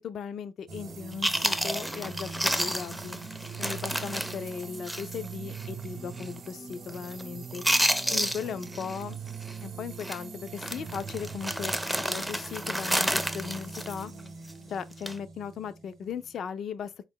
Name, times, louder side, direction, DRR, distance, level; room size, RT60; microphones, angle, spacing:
voice 1, 0.0-2.3 2.6-3.2 3.6-7.6 8.1-9.2 9.6-14.1 14.7-17.0, left 7 dB, 65° left, 0.4 m, -37 dB
sound 1, 0.7-16.4, right 5 dB, 60° right, 0.7 m, -42 dB
Chewing mastication, 0.9-1.0 1.2-5.3 5.5-5.7 6.2-6.5 6.7-7.2 7.5-9.0 9.3-9.6 10.0-10.2 10.6-14.5 14.9-15.2, equal, ahead, 0.4 m, -30 dB
4.0 x 2.4 x 3.5 m
cardioid pair, 90°, 0 cm